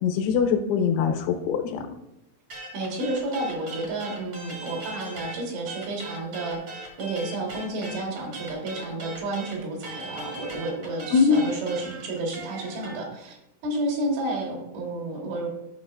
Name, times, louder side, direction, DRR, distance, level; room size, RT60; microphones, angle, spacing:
voice 1, 0.0-1.9 11.1-11.4, left 6 dB, 85° left, 4 dB, 3.0 m, -22 dB
sound 1, 2.5-5.4 5.7-13.0, right 2 dB, 55° right, 1.5 m, -39 dB
voice 2, 2.7-13.4 13.6-15.5, right 2 dB, 75° right, 0 dB, 3.8 m, -31 dB
12.5 x 5.7 x 2.4 m, 0.85 s
omnidirectional pair, 5.5 m